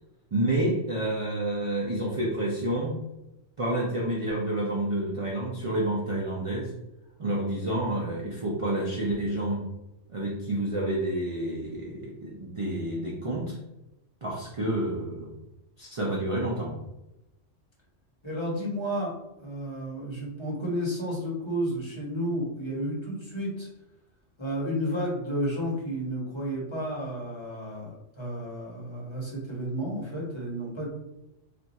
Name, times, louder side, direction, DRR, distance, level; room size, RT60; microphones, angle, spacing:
voice 1, 0.3-2.9 3.6-6.7 7.2-9.7 10.1-13.6 14.2-15.3 15.8-16.8, right 1 dB, 45° right, -3 dB, 0.4 m, -29 dB
voice 2, 18.2-23.7 24.4-31.0, equal, 25° left, -5 dB, 0.9 m, -32 dB
2.5 x 2.4 x 4.0 m, 0.92 s
omnidirectional pair, 1.3 m